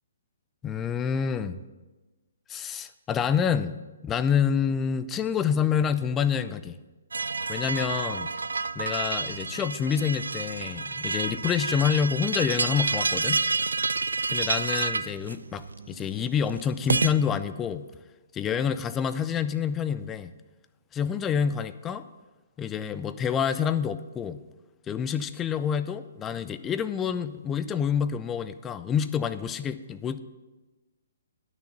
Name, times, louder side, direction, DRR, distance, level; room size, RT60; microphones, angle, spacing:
voice 1, 0.6-1.6 2.5-6.8 7.5-8.3 8.8-13.4 14.3-17.9 18.3-20.3 20.9-22.1 22.6-24.4 24.9-30.2, left 7 dB, 15° left, 12 dB, 0.5 m, -27 dB
sound 1, 7.1-17.1, right 4 dB, 75° right, 0.4 m, -29 dB
10.0 x 6.4 x 6.8 m, 1.2 s
figure-of-eight pair, 130°, 0 cm